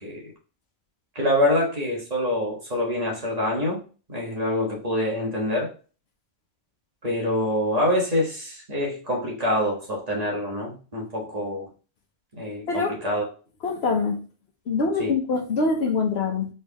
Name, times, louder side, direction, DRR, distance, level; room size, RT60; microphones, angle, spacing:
voice 1, 1.1-3.8 4.1-5.7 7.0-11.7 12.3-13.2 15.0-15.2, left 1 dB, 35° right, 1.5 m, -25 dB
voice 2, 13.6-14.2 14.7-16.5, left 4 dB, 70° left, 1.1 m, -24 dB
4.5 x 4.0 x 2.9 m
omnidirectional pair, 1.1 m